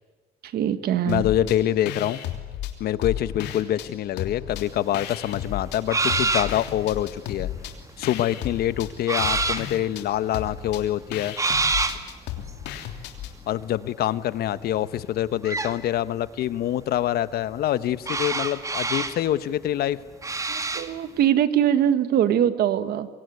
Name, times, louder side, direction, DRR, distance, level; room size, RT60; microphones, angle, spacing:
voice 1, 0.4-1.2 20.5-23.1, right 10 dB, 70° right, 12 dB, 1.8 m, -22 dB
sound 1, 1.1-1.6 1.9-3.9 4.2-5.8 6.1-13.3, left 11 dB, 85° left, 3.1 m, -34 dB
voice 2, 1.1-2.2 2.8-7.5 8.0-11.4 13.5-20.0, left 12 dB, 70° left, 15 dB, 1.1 m, -25 dB
sound 2, 4.6-4.7 5.0-6.6 7.1-7.4 7.9-8.6 9.1-9.7 10.5-10.6 10.8-10.9 11.4-12.0 12.5-12.8 15.4-15.7 18.0-19.2 20.2-21.0, right 3 dB, 20° right, 2.0 m, -26 dB
25.5 x 23.0 x 9.6 m, 1.3 s
cardioid pair, 110°, 17 cm